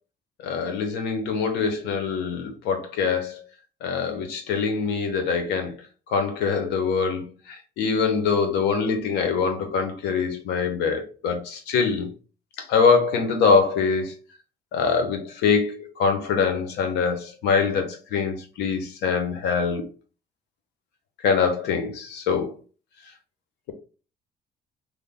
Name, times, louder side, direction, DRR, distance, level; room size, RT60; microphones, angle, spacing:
voice 1, 0.4-3.4 3.8-5.7 6.1-7.2 7.5-12.1 12.7-14.1 14.7-19.9 21.2-22.5, left 5 dB, 80° left, 0.9 m, -24 dB
3.3 x 2.1 x 3.7 m
cardioid pair, 110°, 17 cm